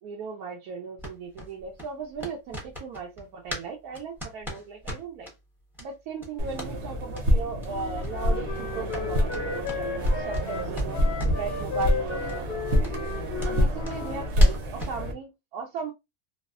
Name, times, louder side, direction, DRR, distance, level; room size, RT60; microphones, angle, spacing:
voice 1, 0.0-5.3 5.8-11.0 11.3-12.2 13.4-15.9, right 5 dB, 85° right, 1.1 m, -37 dB
sound 1, 1.0-3.7 3.9-5.3 5.7-5.9 6.2-6.7 7.1-7.3 7.6-7.7 8.0-8.1 8.4-10.5 10.7-11.5 11.8-11.9 12.3-12.4 12.8-15.0, equal, ahead, 0.6 m, -32 dB
sound 2, 6.4-15.1, equal, 55° right, 0.9 m, -27 dB
Wind instrument woodwind instrument, 7.7-14.3, left 6 dB, 55° left, 0.7 m, -35 dB
3.1 x 2.0 x 2.3 m
omnidirectional pair, 1.6 m